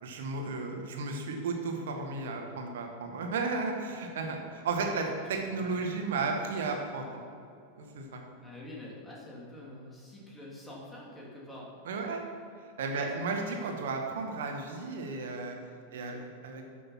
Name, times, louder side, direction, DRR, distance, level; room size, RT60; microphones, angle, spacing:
voice 1, 0.0-7.1 7.8-8.2 11.8-12.2 12.8-15.6 15.9-16.6, right 3 dB, 60° right, 3 dB, 1.6 m, -34 dB
voice 2, 5.4-5.9 8.4-11.7 12.9-13.1 13.5-13.9 15.9-16.2, left 1 dB, 10° left, -4 dB, 3.1 m, -47 dB
12.0 x 7.0 x 5.9 m, 2.5 s
figure-of-eight pair, 90°, 0 cm